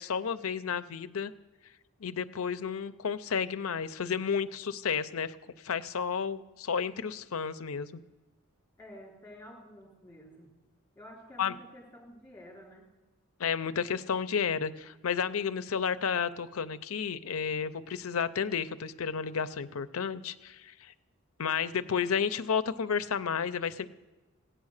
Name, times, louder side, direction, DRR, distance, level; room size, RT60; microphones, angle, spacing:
voice 1, 0.0-1.3 2.0-5.4 5.6-8.0 11.4-11.5 13.4-20.9 21.4-23.9, left 6 dB, 80° left, 12 dB, 0.6 m, -32 dB
voice 2, 8.8-10.5 11.0-12.9, equal, 10° left, -1 dB, 3.7 m, -50 dB
16.0 x 9.1 x 6.5 m, 1.1 s
head